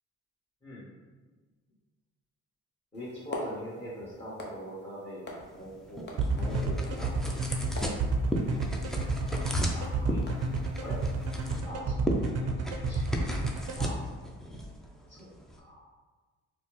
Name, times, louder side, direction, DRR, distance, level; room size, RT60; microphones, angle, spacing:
voice 1, 0.6-0.9 2.9-7.3 9.7-10.2 10.8-11.0 11.6-12.0 12.3-12.4 12.9-13.0 13.3-13.4 13.8-13.9 15.1-15.3 15.6-15.9, equal, 20° left, -12 dB, 1.4 m, -42 dB
sound 1, 2.9-11.6, left 1 dB, 35° left, 0.8 m, -42 dB
sound 2, 5.4-15.6, equal, ahead, 0.4 m, -36 dB
sound 3, 6.2-13.9, right 4 dB, 55° right, 0.5 m, -30 dB
4.1 x 2.1 x 3.0 m, 1.3 s
cardioid pair, 90°, 30 cm